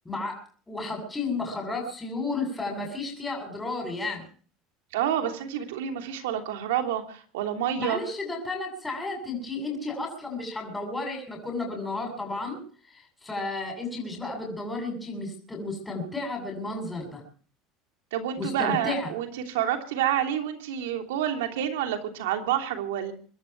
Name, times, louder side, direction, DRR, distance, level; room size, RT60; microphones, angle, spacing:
voice 1, 0.1-0.4 0.7-4.2 7.8-12.6 12.9-17.2 18.4-19.1, left 3 dB, 10° left, 1 dB, 7.5 m, -32 dB
voice 2, 4.9-8.0 18.1-23.1, right 10 dB, 85° right, 5 dB, 3.1 m, -28 dB
25.0 x 12.5 x 4.7 m, 0.43 s
supercardioid pair, 115°, 0 cm